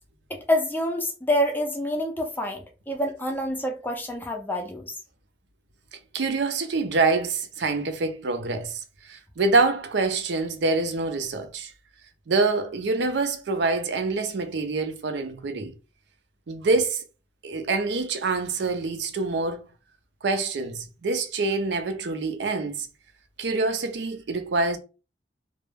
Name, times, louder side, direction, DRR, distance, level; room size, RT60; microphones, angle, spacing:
voice 1, 0.3-4.9, left 1 dB, 10° left, 0.4 m, -27 dB
voice 2, 5.9-11.7 12.3-15.7 16.5-17.0 17.4-19.6 20.2-22.9 23.4-24.8, right 3 dB, 75° right, 0.5 m, -26 dB
2.2 x 2.0 x 3.1 m
head